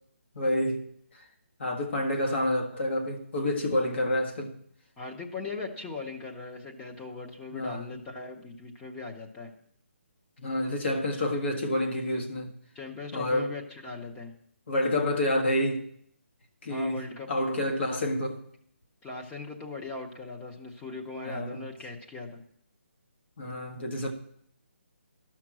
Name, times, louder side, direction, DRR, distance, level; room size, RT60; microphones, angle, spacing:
voice 1, 0.4-0.8 1.1-1.3 1.6-4.5 7.5-7.9 10.4-12.5 13.1-13.5 14.7-15.8 16.6-17.0 17.3-18.4 21.2-21.7 23.4-24.1, left 1 dB, 55° left, 1.8 m, -28 dB
voice 2, 5.0-9.5 12.7-14.3 16.7-17.7 19.0-22.4, left 3 dB, 10° left, 0.9 m, -39 dB
13.0 x 5.9 x 6.2 m
hypercardioid pair, 170°, 7 cm